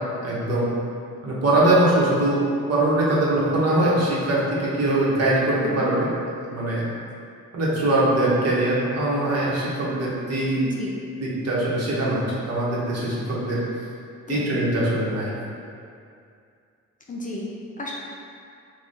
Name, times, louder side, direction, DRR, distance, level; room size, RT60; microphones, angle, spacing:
voice 1, 0.2-0.7 1.2-2.4 2.7-6.1 6.5-6.8 7.5-10.6 11.2-13.6 14.3-15.3, right 1 dB, 55° right, -6 dB, 1.0 m, -22 dB
voice 2, 5.5-5.9 10.5-10.9 14.3-14.5 17.1-17.9, left 2 dB, 25° left, -3 dB, 0.5 m, -33 dB
3.2 x 2.3 x 4.0 m, 2.3 s
cardioid pair, 90°, 30 cm